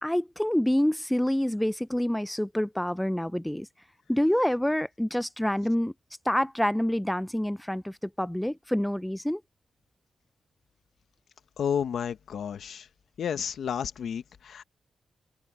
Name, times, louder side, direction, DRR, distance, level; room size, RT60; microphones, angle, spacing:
voice 1, 0.0-3.7 4.1-5.9 6.3-9.4, left 1 dB, 5° left, 0.4 m, -27 dB
voice 2, 11.6-12.9 13.2-14.6, left 8 dB, 75° left, 1.3 m, -31 dB
open air
cardioid pair, 100°, 0 cm